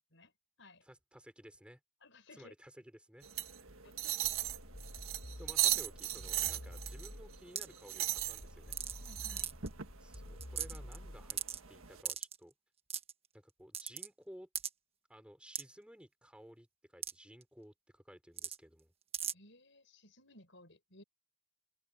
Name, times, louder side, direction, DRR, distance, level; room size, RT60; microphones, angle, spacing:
voice 1, 0.8-1.8 2.3-3.5 5.4-8.8 10.0-11.4 11.7-12.5 13.3-14.5 15.1-18.9, equal, 5° right, 6.0 m, -56 dB
voice 2, 2.0-2.5 3.8-4.3 9.0-9.5 19.3-21.0, left 2 dB, 60° left, 6.8 m, -59 dB
sound 1, 3.2-12.0, right 13 dB, 75° right, 1.6 m, -38 dB
sound 2, 4.2-7.5 8.2-11.5, left 1 dB, 80° left, 3.5 m, -50 dB
sound 3, 7.6-7.8 8.7-9.1 9.4-9.7 10.1-10.2 10.4-11.0 11.3-11.6 12.0-12.4 12.9-13.1 13.7-14.1 14.5-14.7 15.5-15.6 17.0-17.1 17.4-17.5 18.4-18.6 19.1-19.3, right 9 dB, 25° right, 1.4 m, -38 dB
open air
head